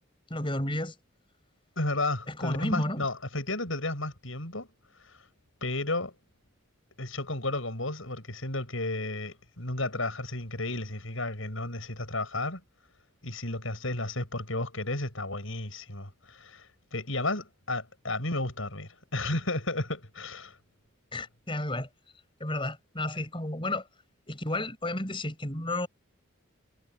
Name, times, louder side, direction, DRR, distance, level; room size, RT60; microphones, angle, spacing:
voice 1, 0.3-1.0 2.3-3.1 21.1-21.9 22.4-23.8 24.3-25.9, left 1 dB, 25° left, 5.5 m, -32 dB
voice 2, 1.8-4.7 5.6-6.2 7.0-12.6 13.2-16.6 16.9-20.6, left 2 dB, 70° left, 7.5 m, -33 dB
head